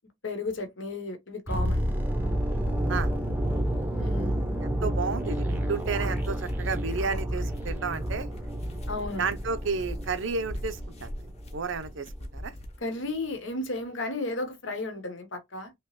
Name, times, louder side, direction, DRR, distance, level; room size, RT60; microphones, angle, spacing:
voice 1, 0.2-1.9 4.0-4.4 8.9-9.2 12.8-15.7, left 2 dB, 65° left, 1.0 m, -33 dB
sound 1, 1.5-11.5 11.7-11.9, right 1 dB, 10° right, 0.6 m, -30 dB
voice 2, 4.6-8.3 9.2-11.2 11.5-12.1 12.3-12.5, right 4 dB, 65° right, 0.6 m, -32 dB
sound 2, 5.6-12.8, equal, 30° left, 0.7 m, -39 dB
3.3 x 3.0 x 3.0 m
head